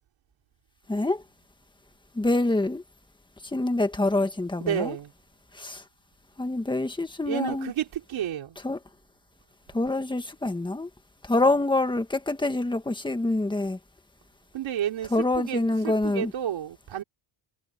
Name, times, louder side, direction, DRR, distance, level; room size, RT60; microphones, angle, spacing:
voice 1, 0.9-1.2 2.1-2.8 3.5-4.9 5.5-5.8 6.4-7.7 8.6-8.8 9.7-10.9 11.2-13.8 15.1-16.3, left 2 dB, 10° left, 1.7 m, -26 dB
voice 2, 4.6-5.1 7.2-8.6 14.5-17.0, right 10 dB, 70° right, 3.3 m, -31 dB
cardioid pair, 145°, 49 cm